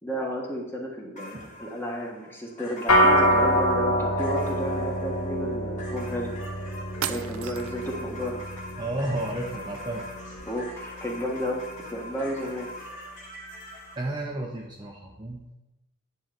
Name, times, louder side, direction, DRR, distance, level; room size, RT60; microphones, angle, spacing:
voice 1, 0.0-6.3 7.0-8.4 10.5-11.6 11.9-12.7, equal, 10° left, -1 dB, 1.5 m, -32 dB
sound 1, 1.1-14.0, left 1 dB, 35° left, 2.3 m, -44 dB
sound 2, 2.9-12.4, equal, 80° left, 1.3 m, -27 dB
sound 3, 7.0-7.9, right 9 dB, 65° right, 0.5 m, -34 dB
voice 2, 8.8-10.1 14.0-15.5, right 1 dB, 20° right, -1 dB, 0.8 m, -32 dB
10.0 x 4.0 x 7.5 m, 0.99 s
head